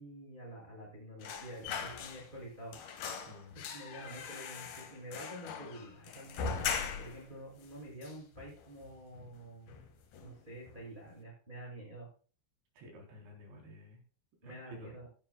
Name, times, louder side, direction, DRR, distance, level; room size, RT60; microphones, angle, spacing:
voice 1, 0.0-2.7 3.5-6.6 6.9-9.7 10.2-12.1 14.4-15.1, right 1 dB, 10° right, -3 dB, 6.5 m, -48 dB
sound 1, 1.2-2.5 2.7-7.3 7.6-7.7 8.0-8.8 9.2-9.4 9.7-10.4 10.7-10.8, left 6 dB, 60° left, 3.1 m, -40 dB
voice 2, 3.3-3.6 12.8-14.0 14.4-14.9, left 1 dB, 60° right, 1 dB, 5.8 m, -52 dB
17.0 x 11.0 x 2.3 m, 0.39 s
omnidirectional pair, 5.9 m